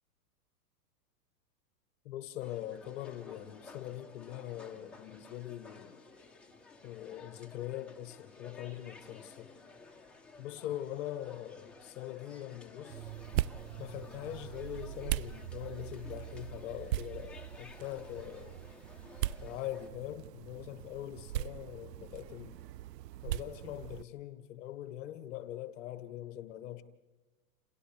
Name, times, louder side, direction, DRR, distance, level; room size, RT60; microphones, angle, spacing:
voice 1, 2.0-6.0 6.8-9.6 10.4-13.1 13.8-18.6 19.4-22.6 23.2-26.8, left 12 dB, 50° left, 1.1 m, -42 dB
sound 1, 2.4-19.9, left 3 dB, ahead, 0.8 m, -54 dB
sound 2, 12.9-24.0, right 14 dB, 80° right, 0.6 m, -40 dB
29.5 x 28.0 x 3.3 m
hypercardioid pair, 150°, 48 cm